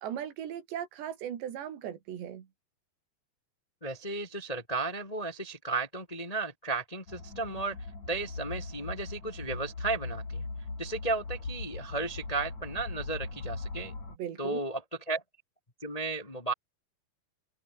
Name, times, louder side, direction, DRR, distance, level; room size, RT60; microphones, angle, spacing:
voice 1, 0.0-2.5 14.2-14.6, right 10 dB, 80° right, 4.7 m, -38 dB
voice 2, 3.8-7.8 8.1-10.4 10.8-13.9 14.4-14.8 15.1-15.2 15.8-16.5, right 3 dB, 15° left, 1.2 m, -34 dB
sound 1, 7.1-14.2, left 3 dB, 40° left, 9.3 m, -40 dB
omnidirectional pair, 4.9 m